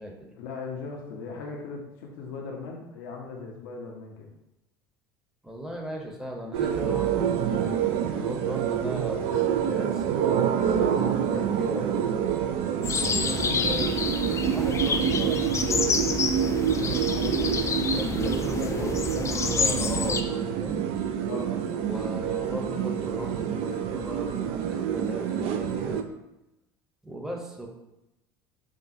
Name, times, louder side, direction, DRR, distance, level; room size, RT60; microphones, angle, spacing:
voice 1, 0.3-4.3 13.3-13.7 17.1-19.3 21.2-21.6 22.6-22.8, left 4 dB, 65° left, 0 dB, 0.6 m, -38 dB
voice 2, 5.4-10.0 10.6-12.1 13.2-14.1 14.5-16.1 17.9-19.0 19.3-20.8 21.8-26.0 27.0-27.7, equal, 5° right, 1 dB, 0.8 m, -37 dB
sound 1, 6.5-26.0, right 8 dB, 55° right, 0.4 m, -27 dB
sound 2, 12.8-20.2, left 5 dB, 25° left, 0.4 m, -28 dB
6.0 x 2.3 x 2.7 m, 0.93 s
figure-of-eight pair, 65°, 12 cm